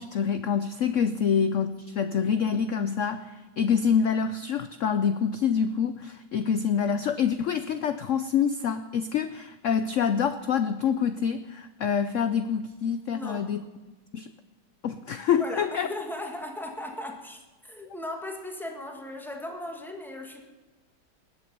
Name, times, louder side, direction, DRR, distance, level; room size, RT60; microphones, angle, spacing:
voice 1, 0.0-13.6 14.1-14.3 14.8-15.9, left 7 dB, 80° left, 11 dB, 0.6 m, -26 dB
voice 2, 13.1-13.5 15.4-20.4, left 1 dB, ahead, 2 dB, 1.5 m, -37 dB
20.0 x 8.1 x 6.7 m, 1.2 s
omnidirectional pair, 2.0 m